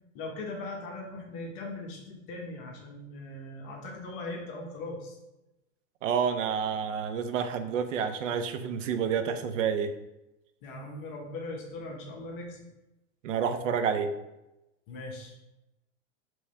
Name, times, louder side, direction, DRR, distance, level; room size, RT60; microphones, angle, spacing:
voice 1, 0.1-5.2 10.6-12.6 14.9-15.3, left 2 dB, 45° left, 0 dB, 0.9 m, -39 dB
voice 2, 6.0-9.9 13.2-14.1, right 7 dB, 80° right, 9 dB, 0.6 m, -29 dB
3.4 x 3.1 x 4.3 m, 0.95 s
supercardioid pair, 145°, 37 cm